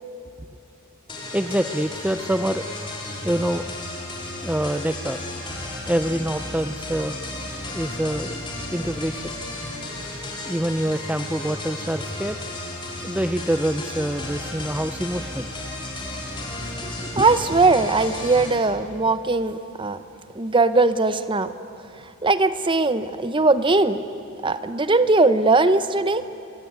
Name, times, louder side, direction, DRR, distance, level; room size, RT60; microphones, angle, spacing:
sound 1, 1.1-18.6, left 2 dB, 25° left, 4.6 m, -33 dB
voice 1, 1.3-2.6 3.2-3.6 4.4-5.2 5.9-7.2 7.7-9.3 10.5-12.4 13.0-15.5, right 1 dB, 5° right, 8 dB, 0.5 m, -26 dB
voice 2, 16.8-20.0 20.3-21.5 22.2-24.0 24.4-26.3, right 3 dB, 25° right, 12 dB, 0.9 m, -20 dB
25.0 x 22.0 x 9.4 m, 2.8 s
head